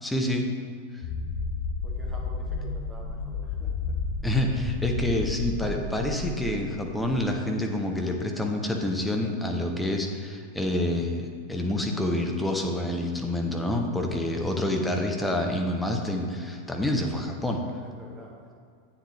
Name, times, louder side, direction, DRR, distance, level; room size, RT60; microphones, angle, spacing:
voice 1, 0.0-0.5 4.2-17.6, left 1 dB, 5° left, 1 dB, 0.9 m, -27 dB
sound 1, 1.0-7.3, left 4 dB, 40° left, 0.9 m, -32 dB
voice 2, 1.8-4.0 17.8-18.5, right 1 dB, 10° right, -3 dB, 1.8 m, -47 dB
8.9 x 7.3 x 3.3 m, 2.1 s
figure-of-eight pair, 90°, 0 cm